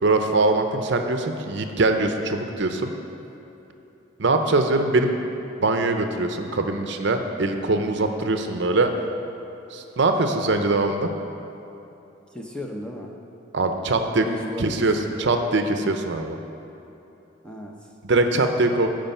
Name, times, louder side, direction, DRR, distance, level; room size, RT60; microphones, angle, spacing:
voice 1, 0.0-2.9 4.2-5.2 5.6-8.9 9.7-11.1 13.5-14.3 14.6-16.4 18.0-18.9, right 2 dB, 55° right, 6 dB, 0.6 m, -22 dB
voice 2, 12.3-13.2 14.2-15.3 17.4-17.9, left 1 dB, 5° left, 0 dB, 0.7 m, -36 dB
14.5 x 5.2 x 5.4 m, 3.0 s
head